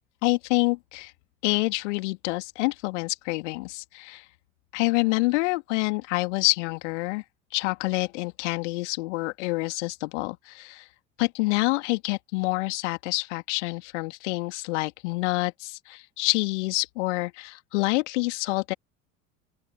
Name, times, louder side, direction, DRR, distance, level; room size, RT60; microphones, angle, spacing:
voice 1, 0.2-1.1 1.4-4.3 4.7-7.2 7.5-10.9 11.2-18.7, left 24 dB, 55° left, 2.7 m, -27 dB
open air
figure-of-eight pair, 70°, 41 cm